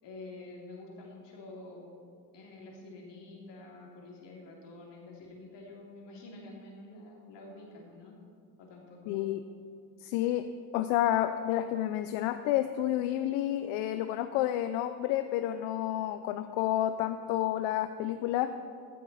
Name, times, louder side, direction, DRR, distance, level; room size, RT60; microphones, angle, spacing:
voice 1, 0.0-1.9 2.3-8.2 8.6-9.4, left 2 dB, 60° left, -1 dB, 2.8 m, -48 dB
voice 2, 9.1-9.4 10.0-10.5 10.7-18.5, left 12 dB, 80° left, 10 dB, 0.6 m, -30 dB
15.0 x 7.4 x 4.1 m, 2.3 s
supercardioid pair, 90°, 47 cm